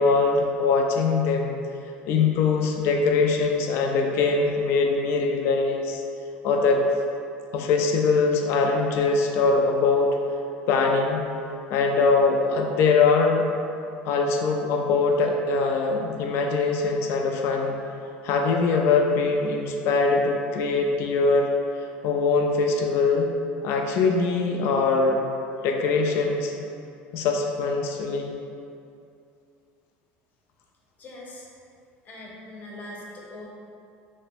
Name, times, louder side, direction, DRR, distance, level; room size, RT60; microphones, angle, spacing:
voice 1, 0.0-1.5 2.1-6.0 6.4-6.8 7.5-10.2 10.7-11.2 11.7-13.5 14.0-17.8 18.2-21.5 22.0-23.3 23.6-25.2 25.6-26.5 27.1-28.3, left 4 dB, 65° left, 2 dB, 0.4 m, -22 dB
voice 2, 31.0-31.5 32.0-33.5, left 1 dB, 40° left, -3 dB, 0.7 m, -41 dB
3.2 x 2.1 x 4.2 m, 2.5 s
supercardioid pair, 110°, 5 cm